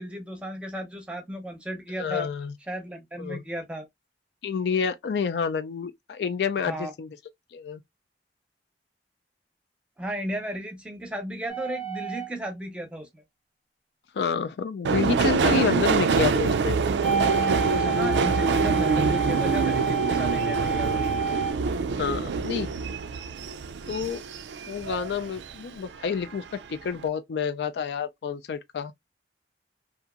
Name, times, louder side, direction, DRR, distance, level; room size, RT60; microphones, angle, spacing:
voice 1, 0.0-2.3 2.7-3.9 6.6-6.9 10.0-13.2 17.7-21.0, right 1 dB, 5° right, 0.7 m, -35 dB
voice 2, 2.0-2.5 3.2-3.4 4.4-7.1 7.5-7.8 14.1-16.8 21.9-22.7 23.9-24.2 24.7-26.4 26.7-28.9, left 6 dB, 70° left, 0.3 m, -28 dB
sound 1, 11.5-12.3 17.0-21.5, right 5 dB, 35° left, 0.8 m, -29 dB
Subway metro underground, 14.8-25.6 25.9-26.6 26.9-27.0, right 5 dB, 85° right, 0.4 m, -25 dB
2.8 x 2.5 x 2.4 m
head